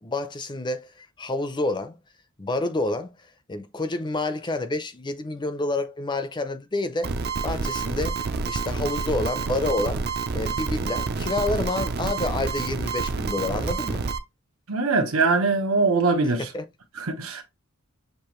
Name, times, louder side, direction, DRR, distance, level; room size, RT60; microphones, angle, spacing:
voice 1, 0.0-1.9 2.4-3.1 3.5-7.1 7.4-8.2 8.5-10.0 10.3-14.0 16.5-16.6, left 2 dB, 20° left, 0.5 m, -28 dB
sound 1, 7.0-14.2, right 4 dB, 50° right, 0.5 m, -28 dB
voice 2, 14.7-16.5 17.0-17.4, right 3 dB, 85° right, 1.1 m, -22 dB
6.7 x 2.5 x 3.0 m
head